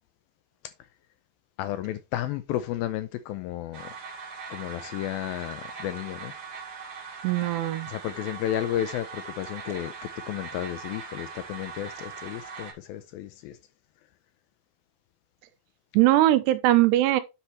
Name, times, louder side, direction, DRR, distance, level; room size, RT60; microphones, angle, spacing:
voice 1, 1.6-3.9 4.5-6.3 7.9-9.9 10.2-13.6, left 12 dB, 85° left, 2.1 m, -32 dB
sound 1, 3.7-12.7, right 5 dB, 45° right, 1.9 m, -40 dB
voice 2, 7.2-7.9 15.9-17.2, right 15 dB, 85° right, 2.9 m, -21 dB
10.0 x 5.6 x 3.1 m
omnidirectional pair, 4.7 m